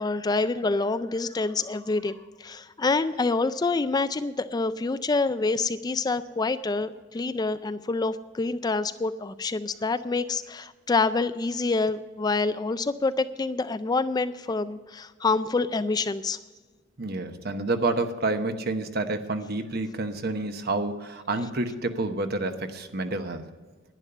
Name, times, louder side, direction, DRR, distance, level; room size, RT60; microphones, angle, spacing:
voice 1, 0.0-16.4, left 3 dB, 20° left, 12 dB, 0.3 m, -27 dB
voice 2, 17.0-23.4, right 2 dB, 55° right, 8 dB, 1.0 m, -29 dB
10.5 x 10.5 x 6.7 m, 1.4 s
head